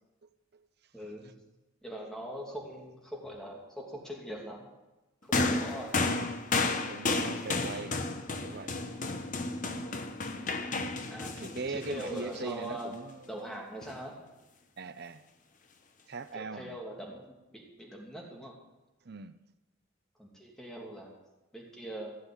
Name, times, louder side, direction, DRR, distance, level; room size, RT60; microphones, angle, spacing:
voice 1, 0.9-1.3 1.8-4.7 5.3-6.0 8.9-9.1 11.1-13.0 13.3-14.2 16.3-18.5 20.2-21.1 21.5-22.2, equal, 5° left, -1 dB, 2.7 m, -42 dB
sound 1, 5.3-12.8 13.8-14.0, left 3 dB, 40° left, 1.1 m, -32 dB
voice 2, 6.8-8.1 8.4-8.8 11.4-13.6 14.8-15.2 16.1-16.8 19.0-19.3, right 4 dB, 55° right, 12 dB, 0.7 m, -41 dB
16.0 x 6.5 x 9.9 m, 1.0 s
head